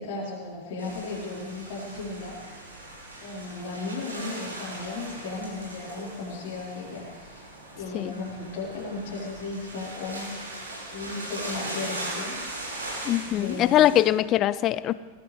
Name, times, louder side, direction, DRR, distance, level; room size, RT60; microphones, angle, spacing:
voice 1, 0.0-2.4 3.2-7.5 7.8-10.3 10.9-12.4 13.2-13.9, left 3 dB, 50° left, -6 dB, 4.2 m, -35 dB
sound 1, 0.8-14.0, right 1 dB, 80° right, 6.4 m, -39 dB
voice 2, 13.0-14.9, left 13 dB, 35° left, 18 dB, 0.5 m, -22 dB
21.0 x 16.0 x 3.4 m, 1.4 s
figure-of-eight pair, 90°, 0 cm